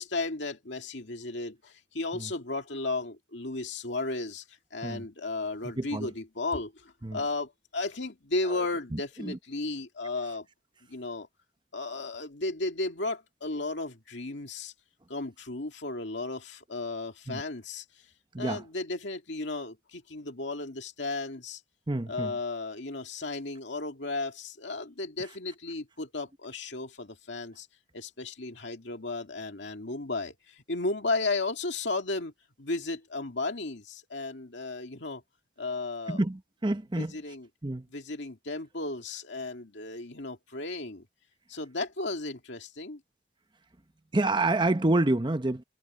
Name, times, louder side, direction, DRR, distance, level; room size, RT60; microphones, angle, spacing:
voice 1, 0.0-10.5 10.9-11.3 11.7-14.7 15.1-17.8 18.4-21.6 22.1-27.7 27.9-32.3 32.6-35.2 35.6-36.2 37.0-37.5 37.9-41.0 41.5-43.0, left 3 dB, 65° left, 2.3 m, -34 dB
voice 2, 5.8-6.1 7.0-7.2 8.5-8.6 8.9-9.4 17.3-17.4 18.3-18.6 21.9-22.3 36.1-37.2 37.6-37.9 44.1-45.6, right 2 dB, 25° right, 0.8 m, -28 dB
head